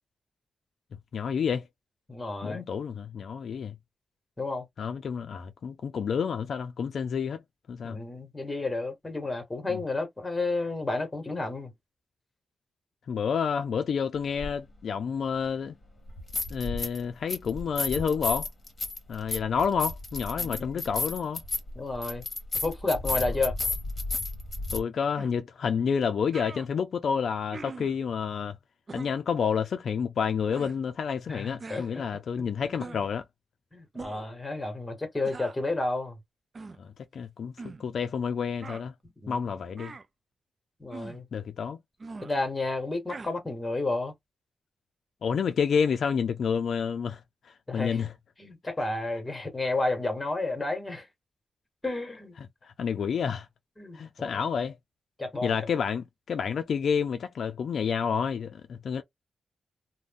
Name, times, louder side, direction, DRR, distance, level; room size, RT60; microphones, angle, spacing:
voice 1, 1.1-1.6 2.4-3.7 4.8-7.4 7.7-8.0 9.7-9.8 13.1-15.8 16.5-18.5 19.1-21.4 24.7-28.6 28.9-33.2 36.8-38.9 39.3-39.9 41.3-41.8 45.2-47.2 47.7-48.1 52.6-53.5 53.9-54.8 55.4-59.0, left 6 dB, 75° left, 0.4 m, -29 dB
voice 2, 2.1-2.6 4.4-4.7 7.8-11.7 20.4-20.8 21.7-22.2 22.6-23.5 31.3-32.0 32.6-33.0 33.7-36.2 39.2-39.5 40.8-41.3 42.2-44.1 47.7-48.0 48.4-51.1 51.8-52.3 53.8-54.3 55.2-55.6, left 2 dB, 15° left, 1.3 m, -31 dB
sound 1, 14.4-14.5 16.1-17.0 17.3-24.8, left 3 dB, 35° left, 1.1 m, -33 dB
sound 2, 25.2-25.3 26.0-26.1 26.3-26.7 27.5-28.0 28.9-29.2 30.5-30.8 31.6-31.9 32.8-33.1 33.9-34.3 35.2-35.6 36.5-36.8 37.6-37.8 38.6-38.8 39.8-40.1 40.9-41.2 42.0-42.3 43.1-43.3, right 4 dB, 40° right, 0.4 m, -42 dB
2.5 x 2.1 x 3.5 m
wide cardioid pair, 105°, 0 cm